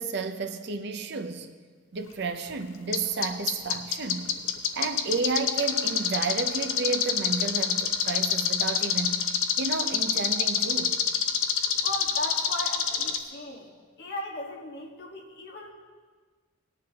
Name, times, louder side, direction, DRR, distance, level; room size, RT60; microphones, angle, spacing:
voice 1, 0.0-1.5 1.9-4.3 4.8-9.2 9.6-11.0, right 4 dB, 55° right, 7 dB, 0.7 m, -31 dB
sound 1, 2.9-3.0 3.2-13.2, left 9 dB, 70° left, 0.8 m, -24 dB
voice 2, 11.8-15.7, left 1 dB, 50° left, 0 dB, 1.5 m, -37 dB
19.0 x 10.0 x 2.9 m, 1.5 s
head